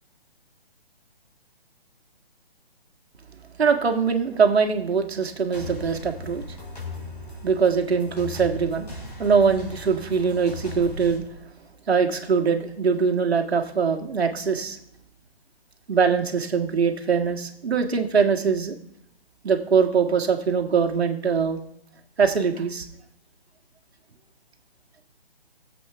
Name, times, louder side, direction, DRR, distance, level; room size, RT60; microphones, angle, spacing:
voice 1, 3.6-6.4 7.4-8.9 9.2-11.2 11.9-14.8 15.9-18.7 19.4-21.6 22.2-22.9, right 5 dB, 85° right, 4 dB, 1.7 m, -22 dB
sound 1, 5.5-11.2, left 2 dB, 40° left, 3.8 m, -38 dB
21.0 x 7.7 x 3.4 m, 0.72 s
hypercardioid pair, 180°, 31 cm